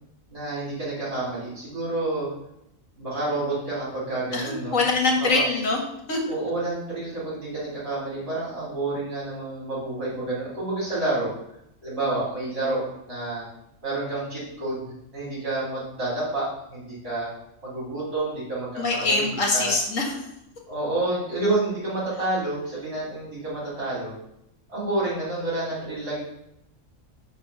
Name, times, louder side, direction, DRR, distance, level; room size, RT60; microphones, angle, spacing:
voice 1, 0.3-2.3 3.0-4.8 5.3-5.4 6.3-11.3 11.8-12.8 13.1-13.4 13.8-14.8 15.1-17.3 17.6-19.2 19.5-19.7 20.7-24.1 24.7-26.2, right 2 dB, 50° right, -9 dB, 3.5 m, -29 dB
voice 2, 4.3-5.8 6.1-6.2 18.8-20.2, left 3 dB, 85° left, 1 dB, 2.1 m, -23 dB
9.6 x 3.4 x 6.9 m, 0.80 s
omnidirectional pair, 1.3 m